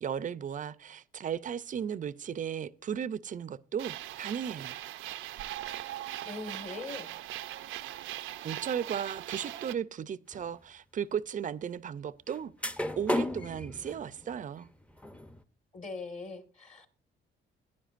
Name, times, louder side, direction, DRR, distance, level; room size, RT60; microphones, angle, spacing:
voice 1, 0.0-4.8 8.4-14.7, right 8 dB, 40° right, 0.5 m, -36 dB
sound 1, 3.8-9.7, right 14 dB, 90° right, 0.5 m, -40 dB
voice 2, 6.2-7.1 15.7-17.0, left 3 dB, 35° left, 1.6 m, -41 dB
sound 2, 10.3-10.5 12.3-12.4 12.6-15.4, left 1 dB, 5° left, 0.6 m, -34 dB
16.5 x 9.8 x 2.5 m
cardioid pair, 90°, 20 cm